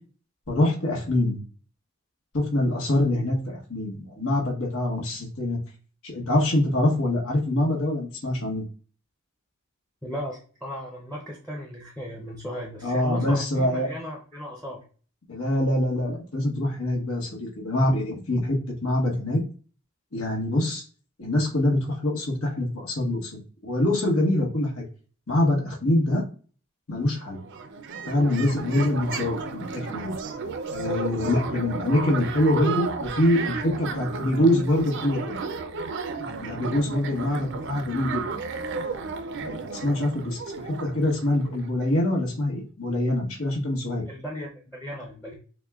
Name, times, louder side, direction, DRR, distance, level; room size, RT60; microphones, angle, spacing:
voice 1, 0.5-1.4 2.3-5.6 6.0-8.7 12.8-13.9 15.3-18.6 18.8-19.4 20.1-20.8 21.2-23.3 23.6-24.8 25.3-26.2 26.9-27.4 28.1-30.1 30.7-35.4 36.2-38.4 39.3-44.0, left 1 dB, 85° left, -1 dB, 1.1 m, -24 dB
voice 2, 10.0-14.8 44.1-45.3, equal, 10° left, -1 dB, 0.6 m, -36 dB
sound 1, 27.0-27.1 27.3-41.9, right 4 dB, 55° right, 0.4 m, -33 dB
6.2 x 2.1 x 2.3 m, 0.40 s
head